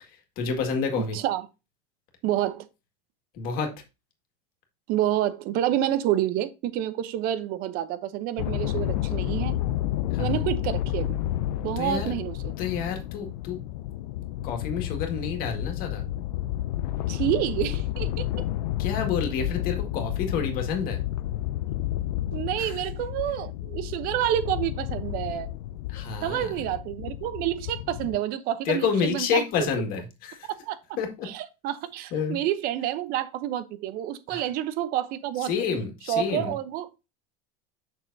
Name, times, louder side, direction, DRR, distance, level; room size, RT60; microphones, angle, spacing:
voice 1, 0.4-1.2 3.4-3.7 10.1-10.4 11.8-12.1 12.6-13.6 14.4-16.0 18.8-21.0 22.6-22.8 25.9-26.6 28.7-30.5 31.0-31.3 32.1-32.4 34.3-34.5 35.4-36.5, left 6 dB, 50° left, 1.9 m, -29 dB
voice 2, 0.9-1.5 2.2-2.7 4.9-9.6 10.2-11.2 11.6-12.5 17.1-18.3 22.3-25.5 26.2-29.7 30.4-30.8 31.2-35.5 36.1-36.9, right 12 dB, 50° right, 0.8 m, -28 dB
sound 1, 8.4-28.2, left 13 dB, 85° left, 0.4 m, -31 dB
6.7 x 6.2 x 2.7 m
supercardioid pair, 140°, 20 cm